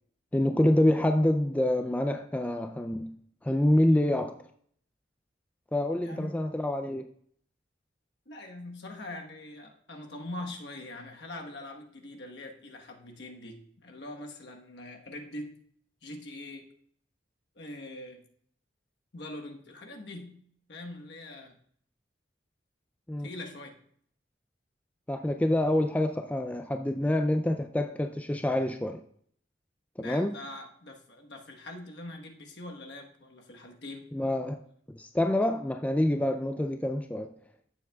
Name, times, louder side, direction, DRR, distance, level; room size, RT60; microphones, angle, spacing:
voice 1, 0.3-3.1 3.4-4.4 5.7-7.1 23.1-23.3 25.1-29.0 30.0-30.4 34.1-34.6 34.9-37.3, left 1 dB, 10° left, 0.3 m, -27 dB
voice 2, 6.0-6.5 8.3-15.5 16.0-16.7 17.5-18.2 19.1-20.4 20.7-21.5 23.2-23.8 30.0-34.1, left 1 dB, 65° left, 1.2 m, -43 dB
14.5 x 7.2 x 2.3 m
head